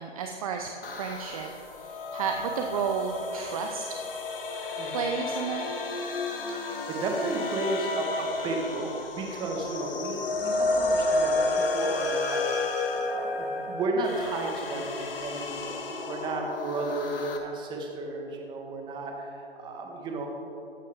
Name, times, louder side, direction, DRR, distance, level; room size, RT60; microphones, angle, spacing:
voice 1, 0.0-1.5 1.8-4.0 4.9-5.7, right 6 dB, 35° right, 3 dB, 0.8 m, -32 dB
sound 1, 0.8-17.4, left 2 dB, 60° left, 1.8 m, -31 dB
voice 2, 6.5-12.4 12.9-20.3, right 2 dB, 15° right, 1 dB, 1.4 m, -33 dB
14.0 x 10.5 x 3.6 m, 2.8 s
figure-of-eight pair, 135°, 32 cm